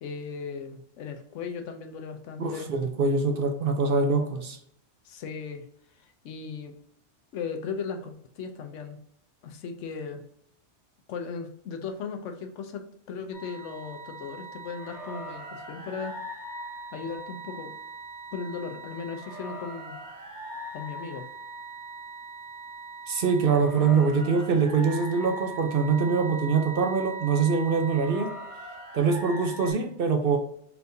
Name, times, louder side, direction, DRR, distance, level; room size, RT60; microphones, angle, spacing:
voice 1, 0.0-2.7 5.0-5.7 6.0-6.8 7.3-9.0 9.4-10.2 11.1-16.1 16.9-17.7 18.3-20.0 20.7-21.3, left 5 dB, 80° left, 6 dB, 1.0 m, -37 dB
voice 2, 2.4-4.6 23.1-28.3 28.9-30.4, right 5 dB, 60° right, 4 dB, 0.6 m, -24 dB
sound 1, 13.3-29.7, right 2 dB, 35° left, 1.9 m, -40 dB
4.3 x 3.4 x 2.6 m, 0.69 s
omnidirectional pair, 1.2 m